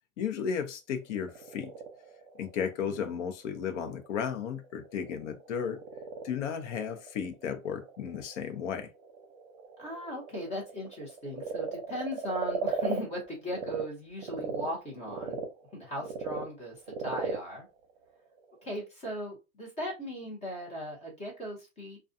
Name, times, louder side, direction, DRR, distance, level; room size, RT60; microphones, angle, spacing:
voice 1, 0.2-1.7 2.4-5.8 6.2-8.9, left 7 dB, 60° left, 0.8 m, -34 dB
Frog, 0.9-13.8 14.2-18.8, right 5 dB, 45° right, 0.8 m, -39 dB
voice 2, 9.8-15.4 15.7-17.7 18.6-22.0, equal, 15° left, 0.9 m, -38 dB
2.3 x 2.3 x 2.6 m
supercardioid pair, 150°, 41 cm